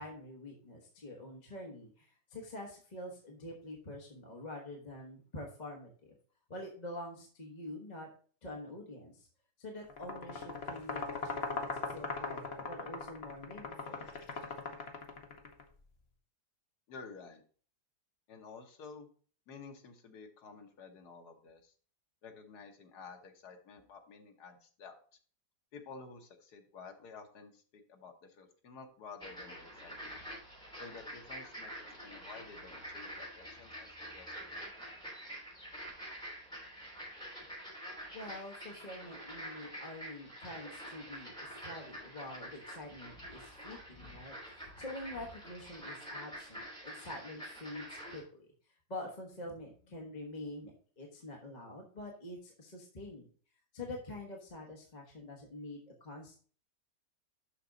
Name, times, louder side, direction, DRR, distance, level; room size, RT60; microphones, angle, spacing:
voice 1, 0.0-6.1 6.5-8.1 8.4-9.3 9.6-14.1 38.1-53.3 53.7-56.4, left 1 dB, 30° left, 0 dB, 1.2 m, -46 dB
sound 1, 9.9-15.6, left 4 dB, 45° left, 1.1 m, -40 dB
voice 2, 16.9-17.4 18.3-19.1 19.5-21.7 22.2-24.9 25.7-30.2 30.8-31.7 32.0-34.6, left 5 dB, 70° left, 4 dB, 1.6 m, -51 dB
sound 2, 29.2-48.2, equal, 5° left, 3.1 m, -47 dB
7.1 x 5.9 x 3.9 m, 0.43 s
omnidirectional pair, 1.8 m